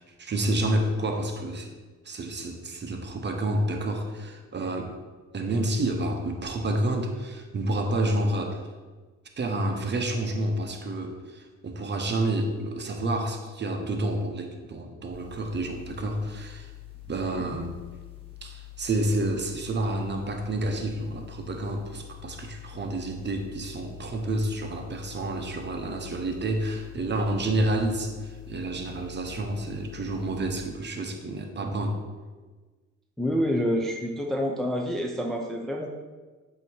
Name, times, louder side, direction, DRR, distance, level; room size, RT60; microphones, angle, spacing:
voice 1, 0.0-1.7 2.0-5.0 5.3-8.6 9.4-16.7 17.1-17.8 18.4-32.0, right 1 dB, 35° right, 4 dB, 0.9 m, -29 dB
sound 1, 15.1-30.6, left 16 dB, 20° left, 1.7 m, -45 dB
voice 2, 33.2-35.9, equal, ahead, 1 dB, 0.5 m, -27 dB
7.7 x 2.9 x 4.4 m, 1.3 s
cardioid pair, 90°, 30 cm